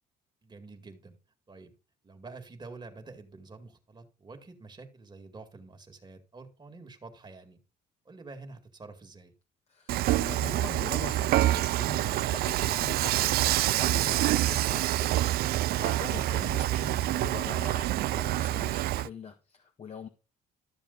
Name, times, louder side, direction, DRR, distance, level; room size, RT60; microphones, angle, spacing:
voice 1, 0.4-1.2 1.5-1.8 2.0-7.6 8.1-9.3 16.0-16.3, right 3 dB, 25° right, 2.1 m, -48 dB
voice 2, 9.7-15.2 15.4-20.1, left 6 dB, 40° left, 1.5 m, -43 dB
Dishes pots and pans / Frying (food), 9.9-19.1, right 15 dB, 65° right, 0.4 m, -27 dB
13.0 x 7.0 x 4.0 m
cardioid pair, 110°, 17 cm